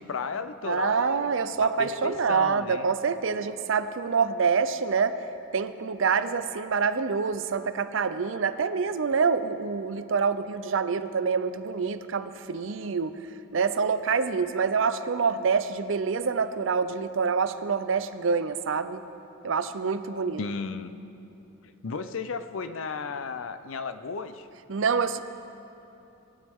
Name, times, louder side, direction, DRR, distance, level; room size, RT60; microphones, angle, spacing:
voice 1, 0.0-1.3 1.6-2.9 20.1-20.9 21.8-24.5, left 5 dB, 80° left, 12 dB, 0.5 m, -34 dB
voice 2, 0.6-5.2 5.5-13.2 13.5-19.0 19.4-20.4 24.7-25.2, right 5 dB, 70° right, 12 dB, 0.5 m, -26 dB
18.0 x 12.0 x 3.6 m, 2.9 s
head